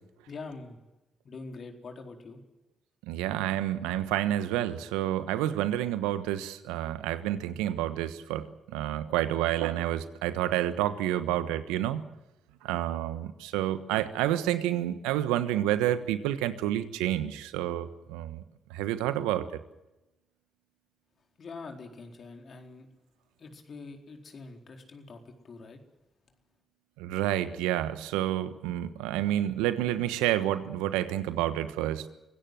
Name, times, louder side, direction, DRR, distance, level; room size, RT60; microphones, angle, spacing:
voice 1, 0.3-0.8 1.2-2.4 21.4-22.9 23.4-25.8, left 3 dB, 55° left, 4 dB, 4.3 m, -44 dB
voice 2, 3.1-12.0 12.6-18.4 18.7-19.5 27.0-32.1, right 13 dB, 85° right, 12 dB, 1.3 m, -29 dB
24.5 x 17.0 x 7.9 m, 0.98 s
hypercardioid pair, 45°, 0 cm